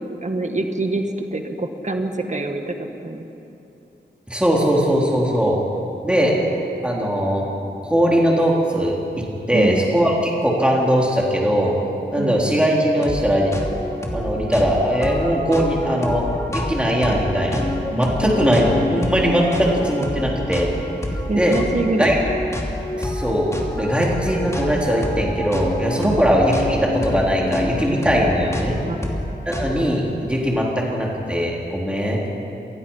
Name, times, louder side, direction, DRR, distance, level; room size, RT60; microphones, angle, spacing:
voice 1, 0.0-3.3 9.5-9.8 12.2-12.6 17.9-18.3 21.3-22.4 26.0-26.3 28.8-29.0, right 2 dB, 40° right, 5 dB, 1.8 m, -25 dB
voice 2, 4.3-5.6 6.0-6.4 6.8-7.5 7.8-10.1 10.4-11.7 12.1-13.5 14.1-17.7 17.9-20.7 21.4-21.5 22.0-22.1 23.0-23.5 23.8-28.7 29.5-32.3, equal, 5° right, -3 dB, 3.6 m, -20 dB
sound 1, 13.0-13.2 13.5-30.0, left 1 dB, 15° left, 2.8 m, -28 dB
26.5 x 20.0 x 5.7 m, 2.9 s
wide cardioid pair, 100°, 19 cm